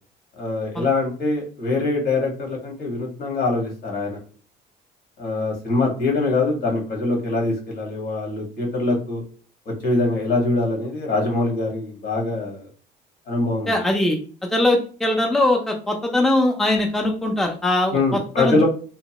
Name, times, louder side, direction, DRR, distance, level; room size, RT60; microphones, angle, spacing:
voice 1, 0.4-4.2 5.2-9.2 9.6-12.7 13.3-13.8 17.9-18.7, left 2 dB, 65° left, -1 dB, 1.5 m, -23 dB
voice 2, 13.7-18.0 18.4-18.7, left 1 dB, ahead, 2 dB, 0.4 m, -21 dB
2.8 x 2.2 x 2.8 m, 0.40 s
cardioid pair, 110°, 17 cm